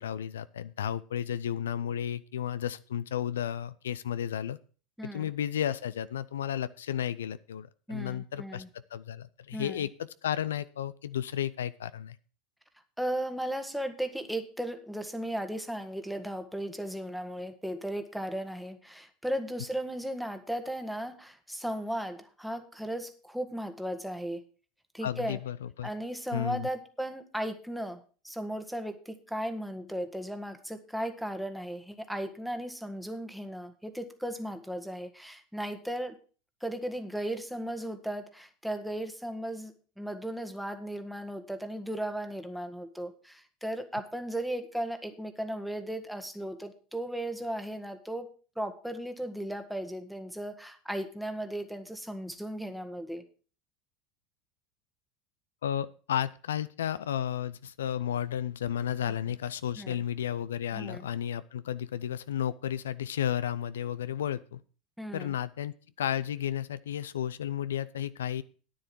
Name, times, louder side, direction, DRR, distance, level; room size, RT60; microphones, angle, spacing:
voice 1, 0.0-4.6 5.1-12.2 25.0-25.9 26.3-26.7 55.6-64.6 65.1-68.4, left 10 dB, 75° left, 16 dB, 0.4 m, -33 dB
voice 2, 5.0-5.3 7.9-8.7 9.5-9.9 13.0-24.4 24.9-25.4 25.8-36.2 36.6-48.3 48.6-53.2 59.8-60.0 60.7-61.1 65.0-65.3, right 1 dB, ahead, 7 dB, 1.5 m, -36 dB
10.0 x 9.7 x 4.5 m, 0.38 s
hypercardioid pair, 75°, 0 cm